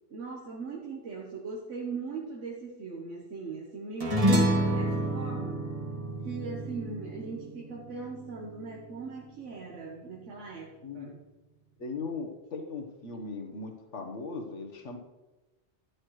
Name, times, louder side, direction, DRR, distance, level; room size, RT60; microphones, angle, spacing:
voice 1, 0.1-5.6 6.2-11.2, right 4 dB, 90° right, -2 dB, 1.5 m, -40 dB
sound 1, 4.0-8.7, right 1 dB, 30° right, 1.7 m, -28 dB
voice 2, 11.8-15.0, left 4 dB, 80° left, 4 dB, 1.6 m, -38 dB
12.5 x 10.5 x 3.2 m, 1.1 s
omnidirectional pair, 1.2 m